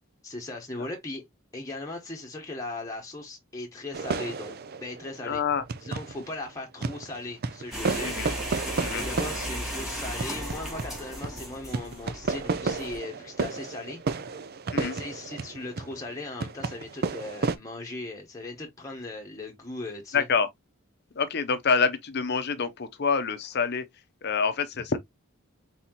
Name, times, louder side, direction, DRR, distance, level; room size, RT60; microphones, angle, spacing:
voice 1, 0.2-1.2 1.5-5.4 5.8-8.5 8.9-14.0 14.7-20.3, left 2 dB, 15° left, 1.0 m, -38 dB
sound 1, 3.9-6.4 6.8-17.6, right 4 dB, 45° right, 0.5 m, -32 dB
voice 2, 5.2-5.6 8.0-8.3 8.8-9.0 14.7-14.9 20.1-20.5 21.1-23.8 24.2-25.0, left 5 dB, 50° left, 0.7 m, -26 dB
sound 2, 7.7-13.0, equal, ahead, 2.0 m, -36 dB
4.1 x 4.1 x 2.8 m
head